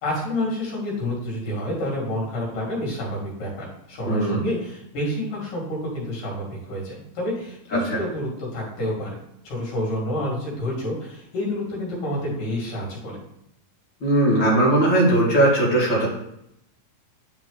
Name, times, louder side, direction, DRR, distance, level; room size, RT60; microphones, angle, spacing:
voice 1, 0.0-9.2 9.4-13.2, left 1 dB, 70° left, -2 dB, 3.8 m, -29 dB
voice 2, 4.1-4.4 7.7-8.0 14.0-16.1, right 1 dB, 40° left, -4 dB, 2.5 m, -19 dB
10.5 x 4.5 x 3.9 m, 0.78 s
omnidirectional pair, 3.9 m